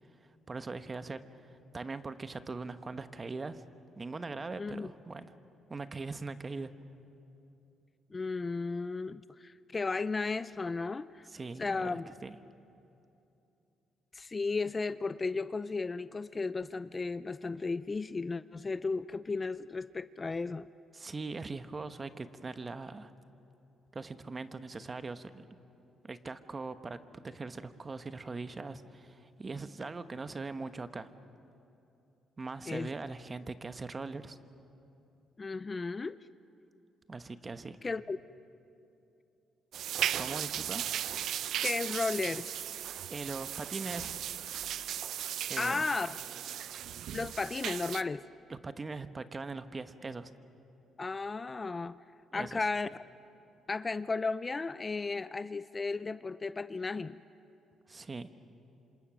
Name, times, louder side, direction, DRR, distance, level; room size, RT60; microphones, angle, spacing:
voice 1, 0.5-3.6 4.0-5.3 5.7-6.7 11.3-12.4 20.9-23.1 23.9-25.4 26.0-27.0 27.2-31.1 32.4-34.4 37.1-37.8 40.1-40.8 43.1-44.2 45.5-45.9 48.5-50.3 52.3-52.6 57.9-58.3, right 3 dB, 30° right, 10 dB, 1.0 m, -41 dB
voice 2, 4.6-4.9 8.1-11.3 11.6-12.1 14.1-20.7 32.7-32.9 35.4-36.2 37.8-38.2 41.6-42.5 45.6-46.2 47.1-48.2 51.0-52.0 52.3-52.9 53.7-57.2, left 4 dB, 30° left, 15 dB, 0.5 m, -34 dB
sound 1, 39.7-48.0, right 10 dB, 75° right, 0.5 m, -36 dB
27.0 x 26.5 x 6.2 m, 2.8 s
cardioid pair, 90°, 0 cm